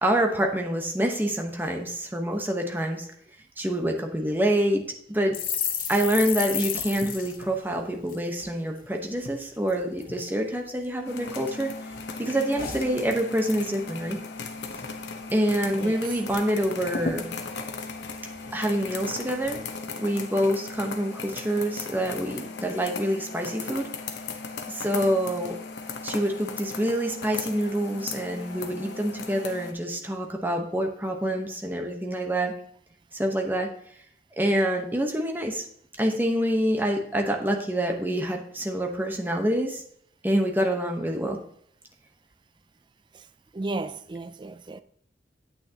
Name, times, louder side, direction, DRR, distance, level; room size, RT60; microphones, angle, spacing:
voice 1, 0.0-3.1 3.6-4.8 5.1-5.3 5.9-11.7 12.2-14.2 14.7-14.8 15.3-17.3 18.5-19.6 20.0-23.9 24.7-25.6 26.0-32.5 33.1-33.7 34.4-35.7 36.0-39.8 40.2-41.4, right 1 dB, 10° right, 1.0 m, -26 dB
sound 1, 5.3-8.9 9.2-9.4 9.7-10.3 10.8-11.6 11.9-13.6 13.9-14.1 14.4-15.0 15.3-15.4 15.7-16.4 16.6-16.7 16.9-18.8 19.3-19.6, left 6 dB, 50° left, 1.0 m, -34 dB
sound 2, 11.0-29.7, left 4 dB, 80° left, 0.9 m, -37 dB
voice 2, 15.7-16.0 43.1-43.2 43.5-44.8, right 2 dB, 25° right, 0.4 m, -34 dB
9.2 x 8.4 x 2.9 m
head